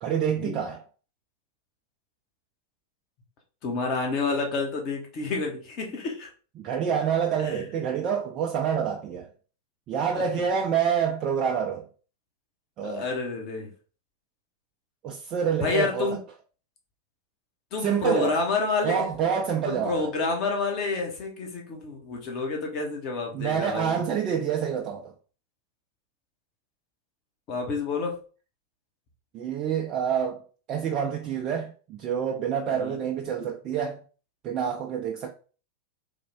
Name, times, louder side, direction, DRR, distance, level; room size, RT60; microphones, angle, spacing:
voice 1, 0.0-0.8 6.6-9.3 9.9-11.9 12.8-13.1 15.0-16.2 17.8-18.4 18.8-20.1 23.3-25.1 29.3-30.4 30.7-34.0 34.4-35.3, right 8 dB, 35° right, 0.5 m, -27 dB
voice 2, 3.6-6.3 7.4-7.6 10.1-10.2 12.8-13.7 15.6-16.2 17.7-19.1 19.6-24.0 27.5-28.2 32.7-33.0, left 4 dB, 40° left, 1.1 m, -29 dB
3.5 x 2.4 x 3.5 m
figure-of-eight pair, 90°, 0 cm